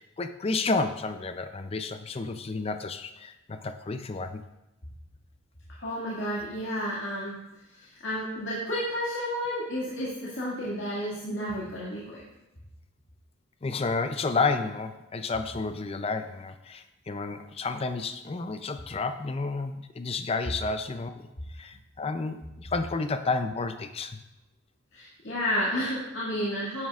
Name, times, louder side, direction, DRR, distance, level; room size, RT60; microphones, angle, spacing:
voice 1, 0.0-4.4 13.6-24.2, left 3 dB, 30° left, 9 dB, 0.5 m, -31 dB
voice 2, 5.8-7.4 7.7-12.2 24.9-26.9, equal, 60° left, -7 dB, 2.1 m, -31 dB
10.5 x 9.4 x 2.4 m, 0.94 s
head